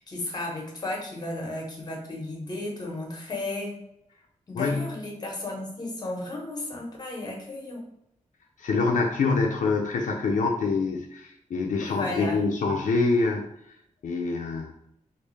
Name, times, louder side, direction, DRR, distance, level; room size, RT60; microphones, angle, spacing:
voice 1, 0.0-3.8 4.5-7.8 11.8-12.4, left 2 dB, 30° left, -1 dB, 0.9 m, -34 dB
voice 2, 4.5-4.9 8.6-13.4 14.0-14.7, left 4 dB, 80° left, 1 dB, 0.4 m, -25 dB
3.2 x 2.5 x 3.2 m, 0.77 s
wide cardioid pair, 150°, 13 cm